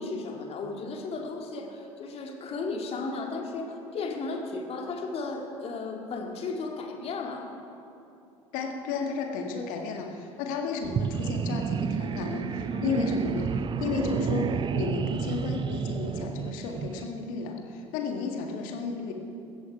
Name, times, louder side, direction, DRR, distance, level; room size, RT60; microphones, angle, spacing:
voice 1, 0.0-7.5 12.7-12.9, left 3 dB, 40° left, 2 dB, 2.1 m, -35 dB
voice 2, 8.5-19.1, left 5 dB, 55° left, 3 dB, 1.8 m, -33 dB
sound 1, 10.8-17.0, right 6 dB, 30° right, 0.6 m, -30 dB
16.5 x 14.0 x 4.8 m, 2.7 s
figure-of-eight pair, 60°, 16 cm